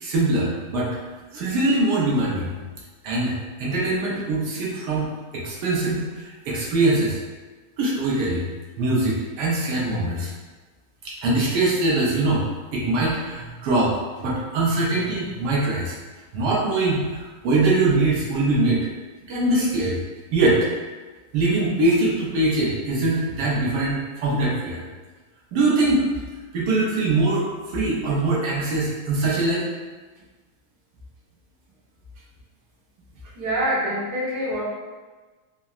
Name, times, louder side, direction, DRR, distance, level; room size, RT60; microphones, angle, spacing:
voice 1, 0.0-0.9 1.3-2.6 3.0-7.2 7.8-8.5 8.8-10.3 11.0-12.4 12.7-16.0 16.3-18.9 19.3-20.0 20.3-20.6 21.3-24.8 25.5-26.0 26.5-29.7, right 2 dB, 85° right, -5 dB, 1.3 m, -22 dB
voice 2, 33.4-34.6, equal, 50° right, -7 dB, 1.0 m, -25 dB
3.8 x 2.0 x 2.3 m, 1.3 s
omnidirectional pair, 1.7 m